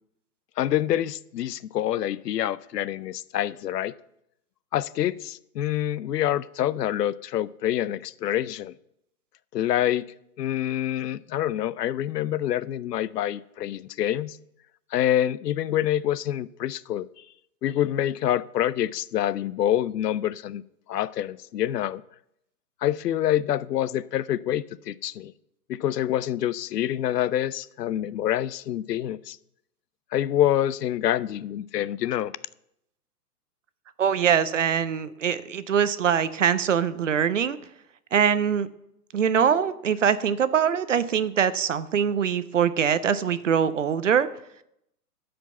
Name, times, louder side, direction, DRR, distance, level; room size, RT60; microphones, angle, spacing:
voice 1, 0.6-3.9 4.7-8.7 9.5-10.0 10.4-14.4 14.9-17.1 17.6-20.6 20.9-22.0 22.8-25.3 25.7-29.4 30.1-32.3, left 12 dB, 75° left, 18 dB, 0.6 m, -26 dB
voice 2, 34.0-37.6 38.1-38.7 39.1-44.3, right 8 dB, 50° right, 15 dB, 0.5 m, -23 dB
11.5 x 5.2 x 7.0 m, 0.79 s
hypercardioid pair, 180°, 48 cm